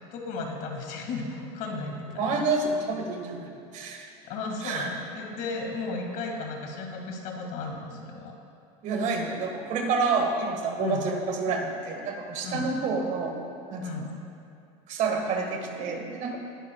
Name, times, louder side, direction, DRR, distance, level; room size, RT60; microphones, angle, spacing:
voice 1, 0.1-2.4 4.2-8.3 10.8-11.1 12.4-12.7 13.8-14.1, left 3 dB, 60° left, 2 dB, 2.0 m, -34 dB
voice 2, 2.2-4.1 4.6-4.9 8.8-13.4 13.7-13.8 14.9-16.4, right 4 dB, 55° right, 3 dB, 1.6 m, -28 dB
19.0 x 11.0 x 2.3 m, 2.5 s
supercardioid pair, 130°, 16 cm